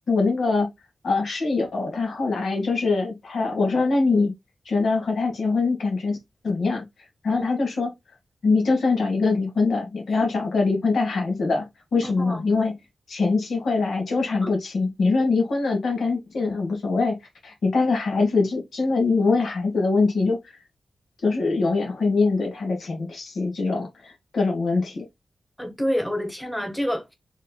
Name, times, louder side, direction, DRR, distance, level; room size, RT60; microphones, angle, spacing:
voice 1, 0.1-0.7 1.0-4.3 4.7-6.2 6.4-6.8 7.2-7.9 8.4-12.8 13.1-17.2 17.4-20.6 21.2-25.1, left 3 dB, 80° left, 1.7 m, -23 dB
voice 2, 12.0-12.4 14.4-14.5 25.6-27.1, equal, ahead, 1.1 m, -28 dB
6.4 x 3.3 x 2.2 m
wide cardioid pair, 160°, 0 cm